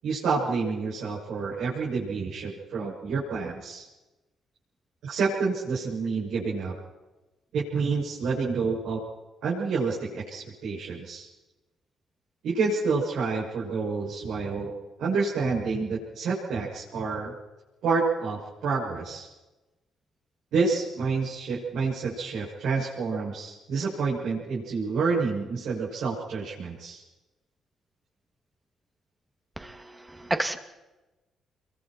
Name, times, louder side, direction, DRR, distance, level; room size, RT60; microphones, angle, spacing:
voice 1, 0.0-3.9 5.0-6.7 7.5-9.0 9.4-11.3 12.4-14.7 15.0-17.3 17.8-19.3 20.5-27.0, right 4 dB, 75° right, -6 dB, 7.1 m, -28 dB
voice 2, 29.6-30.6, right 2 dB, 15° right, 6 dB, 2.5 m, -31 dB
29.0 x 23.5 x 4.6 m, 1.1 s
cardioid pair, 90°, 0 cm